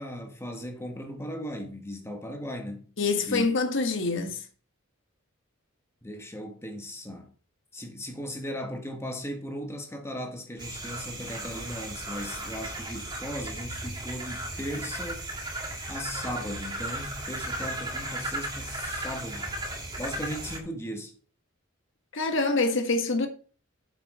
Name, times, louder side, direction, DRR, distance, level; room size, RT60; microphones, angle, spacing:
voice 1, 0.0-2.8 3.3-3.5 6.0-7.3 7.7-15.3 15.9-19.5 20.0-21.1, equal, 15° left, 1.6 m, -37 dB
voice 2, 3.0-4.4 22.1-23.3, left 3 dB, 65° left, 1.5 m, -25 dB
sound 1, 10.6-20.6, right 1 dB, 20° right, 2.0 m, -35 dB
8.0 x 5.7 x 5.5 m
head